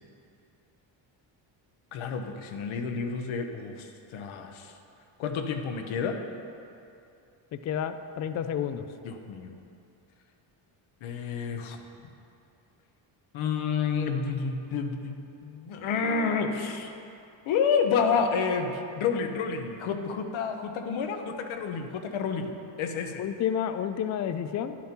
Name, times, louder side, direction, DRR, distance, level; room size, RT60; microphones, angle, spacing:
voice 1, 1.9-4.7 5.2-6.2 9.0-9.5 11.0-11.8 13.3-16.9 17.5-22.5 22.8-23.2, left 5 dB, 70° left, 5 dB, 0.9 m, -29 dB
voice 2, 7.5-8.9 23.2-24.8, left 9 dB, 40° left, 10 dB, 0.4 m, -30 dB
10.5 x 7.2 x 4.4 m, 2.6 s
cardioid pair, 120°, 49 cm